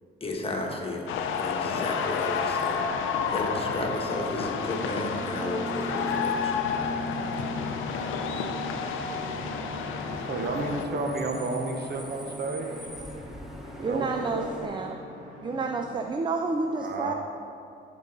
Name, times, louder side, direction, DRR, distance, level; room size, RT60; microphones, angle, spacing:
voice 1, 0.2-2.8 3.3-6.6, left 2 dB, 30° left, 0 dB, 1.2 m, -33 dB
sound 1, 1.1-10.9, left 6 dB, 80° left, 0.6 m, -30 dB
sound 2, 4.6-15.9, equal, 75° right, 1.7 m, -40 dB
Bus / Idling / Screech, 6.6-14.7, left 1 dB, ahead, 0.8 m, -43 dB
voice 2, 10.1-12.7 13.8-14.7 16.7-17.1, right 3 dB, 55° right, 3 dB, 0.9 m, -32 dB
voice 3, 13.8-15.0 15.4-17.1, right 3 dB, 25° right, 4 dB, 0.4 m, -29 dB
11.5 x 3.9 x 4.0 m, 2.4 s
cardioid pair, 90°, 20 cm